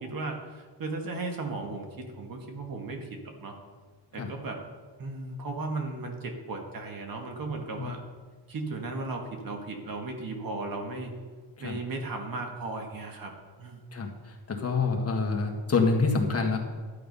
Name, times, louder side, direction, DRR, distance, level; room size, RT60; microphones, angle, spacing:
voice 1, 0.0-3.6 4.1-4.6 5.0-8.0 8.5-11.1 11.6-13.3 13.6-13.8, right 3 dB, 45° right, 3 dB, 1.8 m, -36 dB
voice 2, 13.9-16.7, left 4 dB, 30° left, 1 dB, 1.8 m, -27 dB
12.0 x 8.8 x 5.5 m, 1.5 s
cardioid pair, 125°, 46 cm